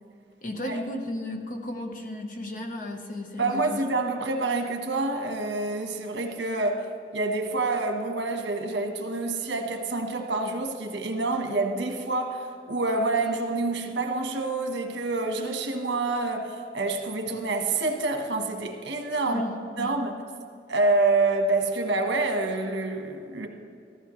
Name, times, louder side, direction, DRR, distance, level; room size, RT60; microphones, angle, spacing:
voice 1, 0.4-3.8 17.2-17.4 19.3-20.0, left 1 dB, 45° left, 3 dB, 1.1 m, -34 dB
voice 2, 3.4-6.8 7.1-19.4 19.8-20.2 20.7-23.5, right 3 dB, 80° right, 4 dB, 1.3 m, -27 dB
14.5 x 14.5 x 3.2 m, 2.3 s
head